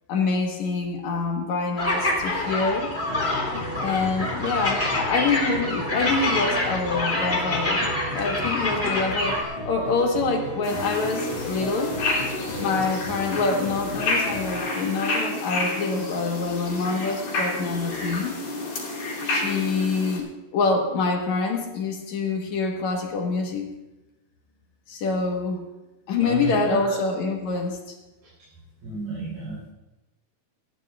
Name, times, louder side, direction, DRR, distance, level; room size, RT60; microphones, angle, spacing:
voice 1, 0.1-2.9 3.8-12.0 12.6-18.4 19.2-23.7 24.9-25.6 26.1-28.0, left 4 dB, 60° left, 2 dB, 2.3 m, -26 dB
sound 1, 1.8-9.4, left 2 dB, 20° left, 2.2 m, -26 dB
sound 2, 3.0-14.6, left 1 dB, 45° left, 4.7 m, -35 dB
sound 3, 10.6-20.2, left 2 dB, 80° left, 4.9 m, -29 dB
voice 2, 26.2-27.0 28.4-28.5 28.8-29.7, right 3 dB, 80° right, -8 dB, 5.3 m, -32 dB
19.0 x 14.5 x 2.4 m, 1.0 s
omnidirectional pair, 4.1 m